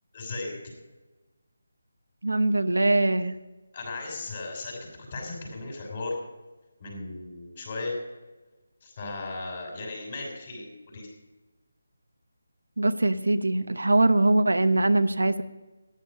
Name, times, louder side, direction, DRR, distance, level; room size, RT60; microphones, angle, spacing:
voice 1, 0.1-0.7 3.7-6.2 6.8-8.0 8.8-11.1, left 3 dB, 35° left, 0 dB, 6.0 m, -36 dB
voice 2, 2.2-3.3 12.8-15.4, right 2 dB, 70° right, 11 dB, 0.8 m, -22 dB
15.0 x 11.0 x 5.1 m, 1.2 s
figure-of-eight pair, 155°, 0 cm